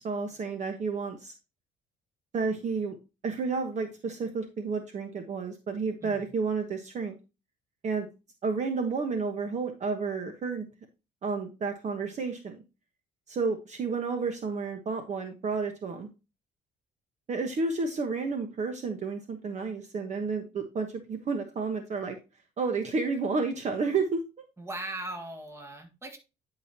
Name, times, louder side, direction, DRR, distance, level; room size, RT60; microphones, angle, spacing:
voice 1, 0.0-1.3 2.3-2.9 3.2-7.1 7.8-8.1 8.4-10.6 11.2-12.6 13.3-16.1 17.3-22.2 22.6-24.2, right 4 dB, 45° right, 5 dB, 1.2 m, -31 dB
voice 2, 24.6-26.2, right 2 dB, 15° right, 4 dB, 1.7 m, -39 dB
10.0 x 4.9 x 2.8 m, 0.28 s
cardioid pair, 110°, 17 cm